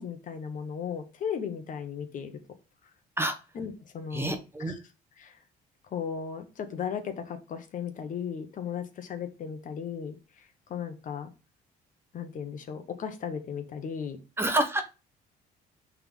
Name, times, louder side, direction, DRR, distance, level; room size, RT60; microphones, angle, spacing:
voice 1, 0.0-2.3 3.5-4.4 4.7-4.8 5.2-5.4 5.9-11.3 12.1-14.2, left 7 dB, 50° left, 8 dB, 1.2 m, -36 dB
voice 2, 4.1-4.7 14.4-14.8, right 1 dB, 15° right, 7 dB, 1.0 m, -27 dB
5.6 x 3.6 x 5.4 m, 0.30 s
cardioid pair, 110°, 17 cm